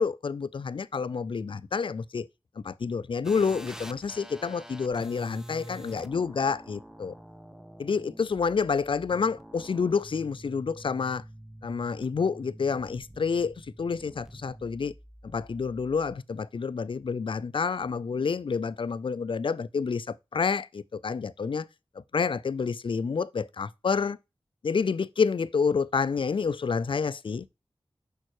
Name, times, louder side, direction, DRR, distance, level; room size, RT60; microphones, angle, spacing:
voice 1, 0.0-2.3 2.6-7.1 7.8-11.2 11.6-14.9 15.2-21.7 22.0-24.2 24.6-27.5, left 5 dB, 65° left, 0.4 m, -29 dB
sound 1, 3.2-16.2, equal, 5° right, 0.6 m, -47 dB
6.4 x 5.4 x 3.0 m
wide cardioid pair, 50°, 9 cm